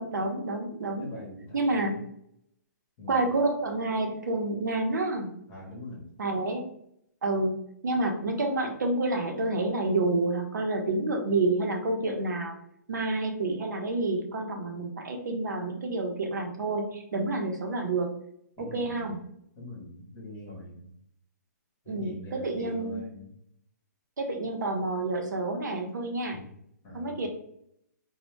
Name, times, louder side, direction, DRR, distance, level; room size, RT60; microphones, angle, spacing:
voice 1, 0.0-1.1 1.5-1.9 3.1-5.3 6.2-6.7 7.2-7.5 7.8-12.5 12.9-18.1 18.6-19.2 21.9-23.0 24.2-26.4 26.9-27.3, right 2 dB, 75° right, 3 dB, 0.7 m, -29 dB
voice 2, 1.0-2.0 3.0-3.3 5.5-6.1 18.6-19.2 19.6-20.9 21.8-23.4 26.3-26.5 26.8-27.3, left 1 dB, 15° left, -3 dB, 0.7 m, -43 dB
2.1 x 2.0 x 3.1 m, 0.71 s
hypercardioid pair, 170°, 10 cm